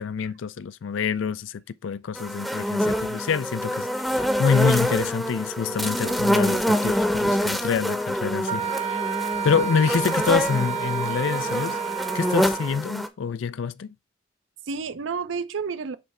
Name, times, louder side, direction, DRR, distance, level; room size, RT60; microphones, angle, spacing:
voice 1, 0.0-9.0 9.4-11.8 12.1-13.9, left 6 dB, 85° left, 0.4 m, -26 dB
sound 1, 2.2-13.1, equal, ahead, 0.7 m, -26 dB
voice 2, 6.0-6.4 8.6-8.7 14.6-16.0, right 5 dB, 90° right, 0.6 m, -31 dB
Wind instrument woodwind instrument, 8.5-12.8, right 8 dB, 35° right, 0.6 m, -30 dB
7.3 x 3.3 x 4.2 m
head